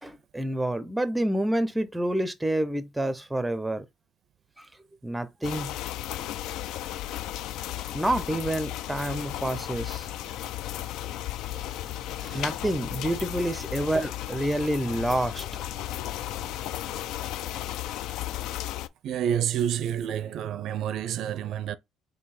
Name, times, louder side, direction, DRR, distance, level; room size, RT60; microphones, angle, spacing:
voice 1, 0.0-3.9 4.6-4.7 5.0-5.8 7.8-10.3 11.5-11.7 12.2-15.5, right 1 dB, 5° right, 0.5 m, -28 dB
sound 1, 5.4-18.9, left 13 dB, 80° left, 0.3 m, -34 dB
Mechanical fan, 9.2-17.7, left 2 dB, 20° left, 0.9 m, -51 dB
voice 2, 19.0-21.8, right 10 dB, 65° right, 0.4 m, -29 dB
3.8 x 2.7 x 4.2 m
cardioid pair, 120°, 0 cm